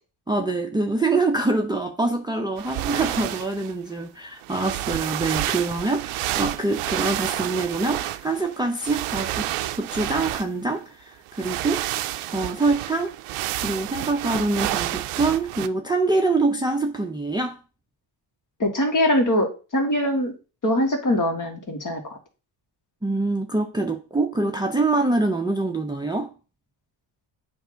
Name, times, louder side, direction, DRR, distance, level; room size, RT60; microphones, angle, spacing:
voice 1, 0.3-9.5 9.8-11.9 12.3-13.1 13.6-17.6 23.0-26.3, right 3 dB, 10° right, 0.6 m, -25 dB
sound 1, 2.6-3.7 4.4-10.8 11.3-15.7, right 15 dB, 85° right, 0.6 m, -29 dB
voice 2, 18.6-20.3 20.6-22.2, left 1 dB, 40° left, 1.8 m, -22 dB
7.9 x 2.7 x 5.0 m
cardioid pair, 90°, 49 cm